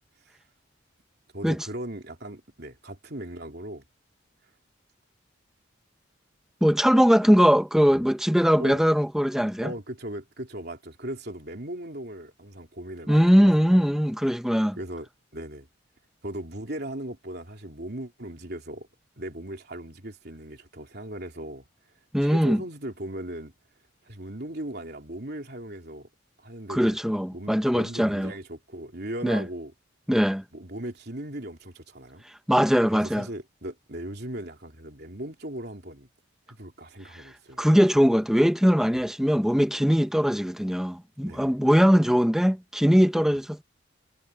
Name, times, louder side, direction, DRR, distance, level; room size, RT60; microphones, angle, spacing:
voice 1, 1.3-3.8 7.9-8.1 8.6-8.8 9.6-13.9 14.8-15.7 16.2-18.9 19.2-21.7 22.2-23.5 24.0-26.1 26.4-27.0 27.3-29.7 30.5-32.2 32.9-36.1 36.5-37.6 38.9-39.0 41.2-41.5, right 1 dB, 50° right, 3.4 m, -38 dB
voice 2, 6.6-9.7 13.1-14.8 22.1-22.6 26.7-28.3 29.2-29.4 30.1-30.4 32.5-33.3 37.6-43.6, equal, ahead, 0.7 m, -21 dB
head